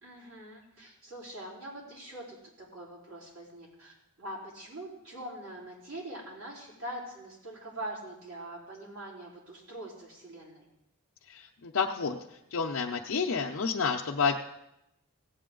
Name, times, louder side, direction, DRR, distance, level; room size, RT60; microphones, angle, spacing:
voice 1, 0.0-10.7, right 1 dB, 80° right, -5 dB, 4.1 m, -43 dB
voice 2, 11.3-12.2 12.5-14.4, left 5 dB, 80° left, -1 dB, 0.6 m, -29 dB
16.0 x 8.4 x 3.8 m, 0.87 s
head